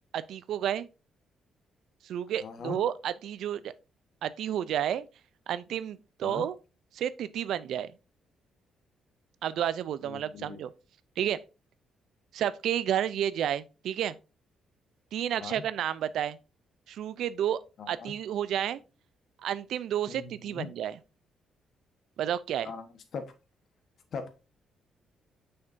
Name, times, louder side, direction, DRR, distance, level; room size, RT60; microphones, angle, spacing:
voice 1, 0.1-0.9 2.0-3.7 4.2-5.1 5.5-6.6 6.9-7.9 9.4-10.7 11.2-11.4 12.3-14.2 15.1-16.4 16.9-17.6 17.9-18.8 19.4-21.0 22.2-22.7, right 10 dB, 75° right, 0.4 m, -31 dB
voice 2, 2.4-2.8 6.2-6.5 10.0-10.6 15.4-15.6 17.8-18.1 20.1-20.7 22.6-22.8 23.1-23.2 24.1-24.3, left 5 dB, 60° left, 1.2 m, -39 dB
6.6 x 5.7 x 2.6 m
cardioid pair, 90°, 0 cm